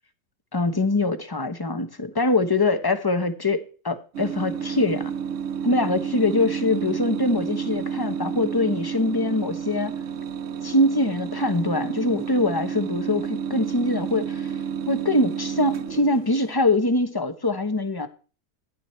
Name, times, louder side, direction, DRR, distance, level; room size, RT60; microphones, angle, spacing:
voice 1, 0.5-5.1 5.6-9.9 10.6-14.5 14.9-18.1, left 2 dB, 20° left, 0.9 m, -23 dB
sound 1, 4.1-16.5, right 7 dB, 60° right, 1.1 m, -30 dB
15.0 x 10.5 x 4.4 m
omnidirectional pair, 1.6 m